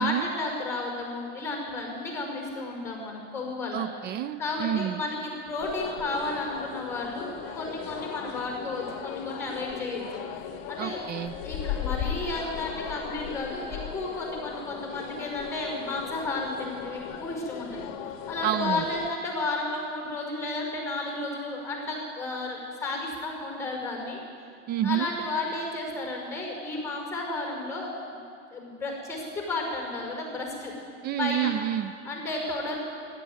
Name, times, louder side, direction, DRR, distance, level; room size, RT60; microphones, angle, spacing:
voice 1, 0.0-3.9 4.4-10.0 10.7-11.0 11.4-17.9 18.3-24.2 24.8-28.2 28.5-30.7 31.2-31.5 32.0-32.8, left 2 dB, 5° left, 0 dB, 5.4 m, -32 dB
voice 2, 3.7-5.0 10.8-11.3 18.4-18.9 24.7-25.1 31.0-31.9, right 11 dB, 25° right, 14 dB, 0.3 m, -29 dB
sound 1, 5.6-19.1, left 9 dB, 55° left, 1.1 m, -37 dB
13.0 x 11.5 x 9.5 m, 2.5 s
hypercardioid pair, 115°, 39 cm